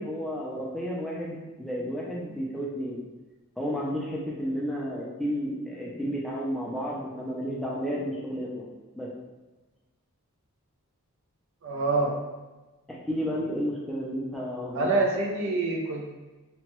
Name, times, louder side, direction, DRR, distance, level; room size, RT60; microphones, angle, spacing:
voice 1, 0.0-3.0 3.6-8.6 8.9-9.2 12.9-14.9, equal, ahead, -5 dB, 0.4 m, -32 dB
voice 2, 11.6-12.2 14.7-16.2, right 2 dB, 60° right, 0 dB, 0.5 m, -26 dB
2.9 x 2.2 x 2.9 m, 1.2 s
head